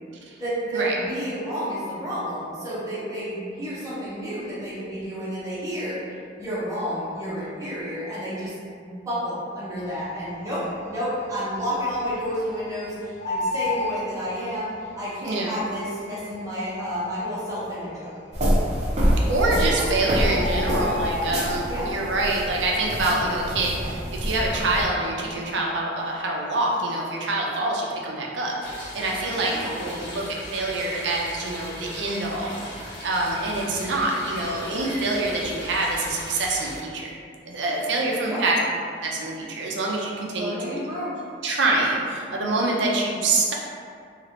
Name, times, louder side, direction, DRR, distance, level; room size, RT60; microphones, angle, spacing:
voice 1, 0.4-8.6 8.8-18.1 21.7-21.9 29.3-30.0 38.2-38.4 40.3-41.1, equal, 20° right, -10 dB, 0.9 m, -30 dB
Bird, 10.3-10.9 11.2-11.3 11.5-12.7 13.0-14.8 15.7-15.8 16.4-16.5 16.7-16.8 17.5-17.9 18.9-19.0 19.3-19.4 19.7-22.0 22.3-22.6 22.9-24.3 24.6-24.9, left 2 dB, 80° left, 0.8 m, -31 dB
sound 1, 18.3-24.8, equal, 40° right, 0.5 m, -26 dB
voice 2, 19.3-30.2 30.5-32.6 33.0-37.1 37.5-38.6 39.0-40.6 41.4-43.5, right 2 dB, 85° right, -2 dB, 0.5 m, -25 dB
sound 2, 28.6-36.8, left 1 dB, 25° left, 0.7 m, -38 dB
3.0 x 2.4 x 2.8 m, 2.3 s
head